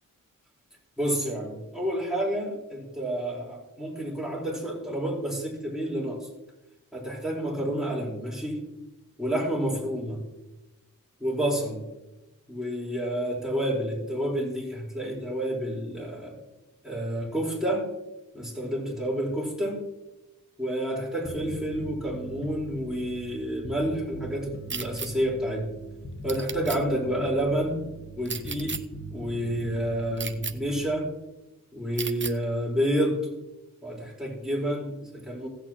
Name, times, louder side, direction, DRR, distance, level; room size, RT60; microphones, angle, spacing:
voice 1, 1.0-6.3 6.9-8.6 9.2-10.2 11.2-11.8 12.5-16.4 16.8-17.9 18.3-19.8 20.6-25.7 26.2-27.8 28.2-28.8 29.1-31.1 31.7-33.2 33.8-35.5, equal, ahead, -4 dB, 4.5 m, -29 dB
Bass guitar, 21.2-30.8, right 1 dB, 35° left, 1.0 m, -42 dB
sound 1, 24.7-25.1 26.3-26.8 28.3-28.8 30.2-30.5 32.0-32.3, right 5 dB, 35° right, 0.6 m, -33 dB
16.0 x 8.6 x 3.0 m, 1.0 s
wide cardioid pair, 70°, 33 cm